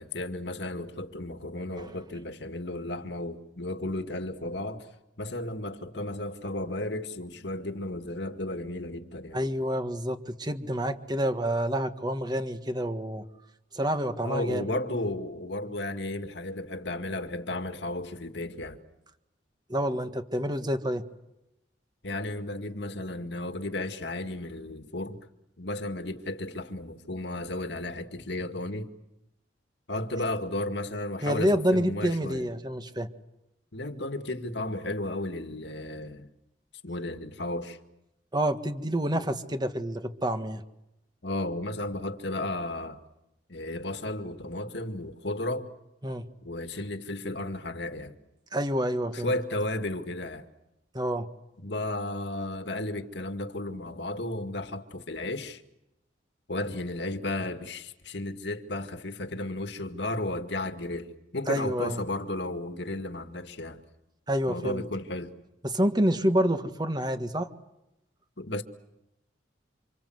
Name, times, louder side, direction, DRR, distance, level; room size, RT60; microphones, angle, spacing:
voice 1, 0.0-4.9 5.2-9.4 14.2-18.8 22.0-25.2 25.6-28.9 29.9-32.5 33.7-36.3 36.8-37.8 41.2-43.0 43.5-45.7 46.4-48.1 49.1-50.5 51.6-55.6 56.5-63.8 64.5-65.3 68.4-68.6, left 1 dB, 65° left, 2.1 m, -34 dB
voice 2, 9.3-13.3 13.7-14.6 19.7-21.0 31.2-33.1 38.3-40.6 46.0-46.3 48.5-49.3 50.9-51.3 61.5-62.0 64.3-64.8 65.6-67.5, equal, 20° right, 1.6 m, -28 dB
28.0 x 27.0 x 7.9 m
head